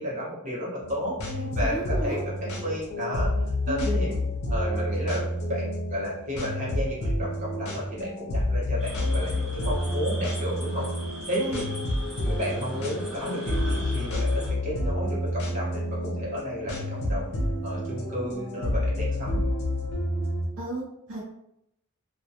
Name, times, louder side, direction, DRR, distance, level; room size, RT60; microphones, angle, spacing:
voice 1, 0.0-3.3 3.7-4.2 4.5-10.9 11.3-11.7 12.2-17.3 17.6-19.4, equal, 35° right, -6 dB, 0.9 m, -32 dB
sound 1, 0.8-20.5, left 1 dB, 75° left, 0.5 m, -29 dB
voice 2, 1.4-2.2 3.7-3.9 11.4-11.7 20.6-21.2, right 1 dB, 60° right, -5 dB, 0.5 m, -34 dB
sound 2, 8.8-14.5, right 1 dB, ahead, 0.6 m, -41 dB
2.2 x 2.1 x 2.7 m, 0.79 s
head